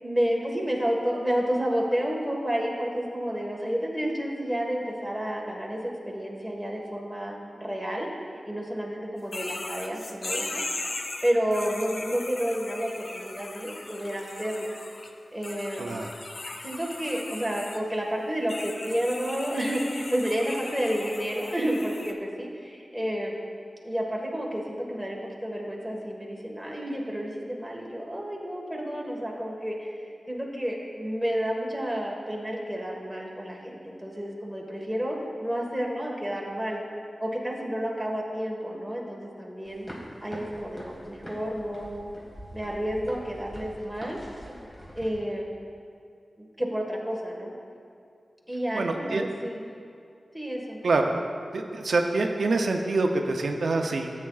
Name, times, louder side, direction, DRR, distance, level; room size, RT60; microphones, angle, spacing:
voice 1, 0.0-10.6 11.2-14.7 15.3-15.9 16.6-23.4 23.8-36.8 37.2-39.9 40.2-42.1 42.5-44.2 44.9-45.5 46.4-47.5 48.5-49.6 50.3-50.8, equal, ahead, -2 dB, 1.4 m, -30 dB
sound 1, 9.3-15.1 15.4-17.8 18.5-22.1, left 2 dB, 55° left, 0.6 m, -38 dB
voice 2, 15.8-16.1 48.7-49.3 50.8-51.2 51.5-54.1, right 3 dB, 80° right, 3 dB, 0.5 m, -26 dB
sound 2, 39.6-45.1, equal, 15° left, 1.7 m, -44 dB
14.5 x 8.2 x 2.4 m, 2.4 s
wide cardioid pair, 100°, 0 cm